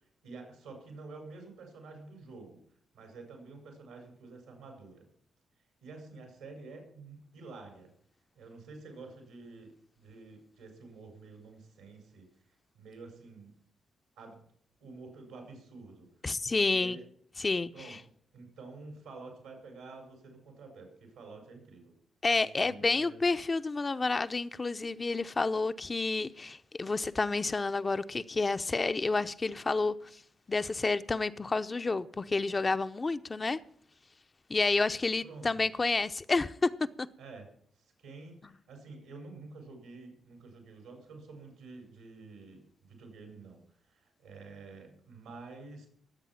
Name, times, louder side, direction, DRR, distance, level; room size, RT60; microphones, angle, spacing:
voice 1, 0.2-2.6 2.9-5.1 5.8-7.9 8.3-12.3 12.7-13.6 14.2-14.4 14.8-16.1 16.5-17.0 17.7-18.0 18.3-21.9 22.2-23.2 35.2-35.7 37.2-37.5 38.0-43.6 43.9-45.9, right 3 dB, 85° right, 5.0 m, -49 dB
voice 2, 16.2-17.0 17.4-18.0 22.2-29.9 30.5-33.6 34.5-36.7 37.0-37.1, left 3 dB, 35° left, 0.7 m, -30 dB
19.5 x 8.3 x 5.8 m
hypercardioid pair, 40°, 0 cm